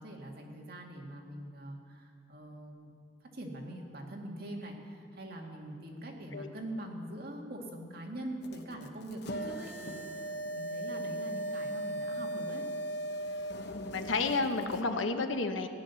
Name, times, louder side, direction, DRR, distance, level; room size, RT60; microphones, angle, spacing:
voice 1, 0.0-2.9 3.3-12.6, right 1 dB, 55° right, 0 dB, 2.0 m, -43 dB
sound 1, 8.4-14.8, right 1 dB, 60° left, 1.0 m, -38 dB
voice 2, 13.9-15.7, left 3 dB, 85° left, 6 dB, 1.1 m, -31 dB
16.5 x 9.9 x 7.0 m, 2.2 s
head